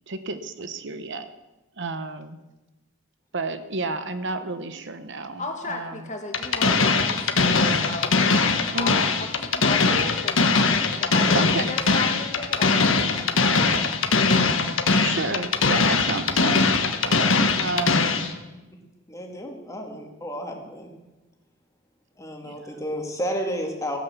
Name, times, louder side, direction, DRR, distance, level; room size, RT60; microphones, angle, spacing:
voice 1, 0.1-1.3 1.8-2.4 3.3-6.1 8.7-9.0 11.3-11.7 14.9-16.8 17.0-18.1 22.5-22.7, right 3 dB, 55° right, 10 dB, 0.9 m, -31 dB
voice 2, 5.4-13.8, left 2 dB, 35° left, 3 dB, 1.9 m, -36 dB
sound 1, 6.3-18.3, left 4 dB, 60° left, 1.3 m, -21 dB
voice 3, 19.1-20.9 22.2-24.0, equal, 15° left, 1 dB, 2.2 m, -31 dB
16.0 x 9.0 x 7.3 m, 1.1 s
head